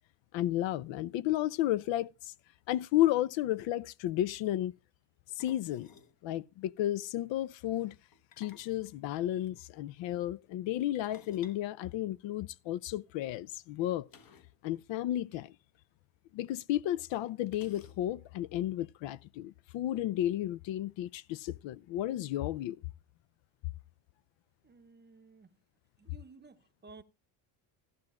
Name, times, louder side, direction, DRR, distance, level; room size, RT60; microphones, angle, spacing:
voice 1, 0.3-2.3 2.7-4.7 5.4-5.9 6.2-7.9 8.4-14.1 14.6-15.5 16.3-22.8, left 13 dB, 65° left, 0.5 m, -33 dB
sound 1, 3.1-3.2 3.4-3.6 5.4-6.2 8.1-9.5 11.0-12.6 14.1-14.6 14.9-15.0 15.3-15.4 16.4-16.5 17.5-18.3, left 6 dB, 45° left, 1.1 m, -58 dB
voice 2, 24.6-25.6 26.0-27.0, right 4 dB, 20° right, 0.7 m, -55 dB
14.5 x 10.5 x 2.3 m
cardioid pair, 110°, 48 cm